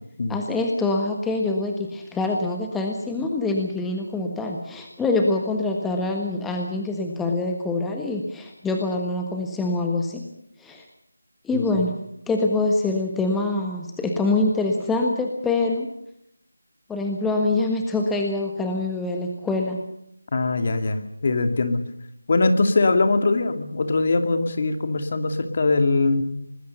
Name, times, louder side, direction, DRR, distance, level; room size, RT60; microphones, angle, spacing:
voice 1, 0.3-10.3 10.6-10.8 11.4-11.9 12.3-15.9 16.9-19.8, left 2 dB, 5° left, 2 dB, 1.5 m, -25 dB
voice 2, 11.5-11.8 20.3-21.8 22.3-26.2, left 3 dB, 40° left, 8 dB, 2.6 m, -22 dB
25.5 x 20.0 x 6.8 m, 0.75 s
figure-of-eight pair, 165°, 0 cm